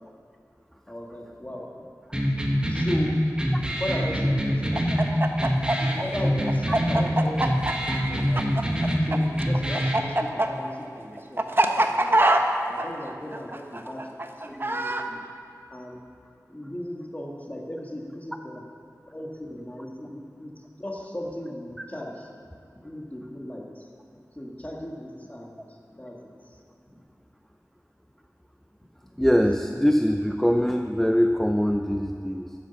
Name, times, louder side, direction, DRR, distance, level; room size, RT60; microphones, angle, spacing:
voice 1, 0.9-1.9 2.7-3.2 3.8-5.0 5.8-7.8 8.1-8.5 9.0-10.7 11.0-12.3 12.7-14.0 14.4-15.2 15.7-16.0 16.5-18.6 19.1-22.3 22.8-23.9 24.4-25.6 25.9-26.2 26.4-26.5, left 1 dB, 25° left, -1 dB, 1.7 m, -37 dB
sound 1, 2.1-10.1, equal, 15° right, 1.4 m, -25 dB
Chicken rooster, 4.7-9.2 9.4-15.0, right 1 dB, 35° right, 0.7 m, -23 dB
voice 2, 29.2-32.5, equal, 5° left, 5 dB, 0.5 m, -23 dB
9.9 x 7.7 x 7.0 m, 2.4 s
wide cardioid pair, 55°, 6 cm